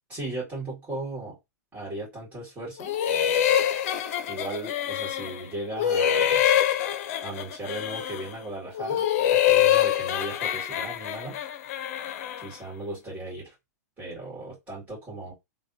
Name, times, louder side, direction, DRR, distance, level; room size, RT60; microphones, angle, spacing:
voice 1, 0.1-1.4 1.7-2.9 4.3-6.4 7.2-11.4 12.4-13.5 14.0-15.3, right 2 dB, 20° right, -6 dB, 1.8 m, -37 dB
sound 1, 2.8-5.5 5.8-8.3 8.8-12.5, left 10 dB, 50° left, 0.5 m, -25 dB
3.2 x 2.2 x 2.8 m, 0.21 s
hypercardioid pair, 110°, 10 cm